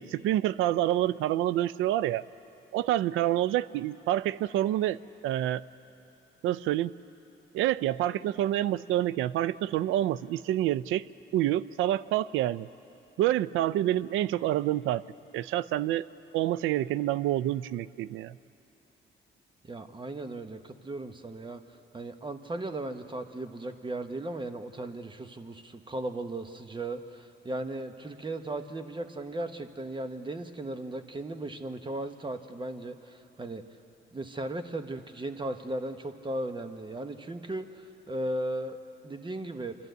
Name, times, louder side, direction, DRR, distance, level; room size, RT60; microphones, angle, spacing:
voice 1, 0.0-2.2 2.7-5.0 5.2-5.6 6.4-6.9 7.5-11.0 11.3-12.7 13.2-15.0 15.3-16.0 16.3-18.4, right 13 dB, 90° right, 17 dB, 0.4 m, -27 dB
voice 2, 19.6-21.6 21.9-33.6 34.1-38.8 39.0-39.7, right 1 dB, 25° right, 7 dB, 1.2 m, -36 dB
28.0 x 12.0 x 8.1 m, 3.0 s
cardioid pair, 90°, 20 cm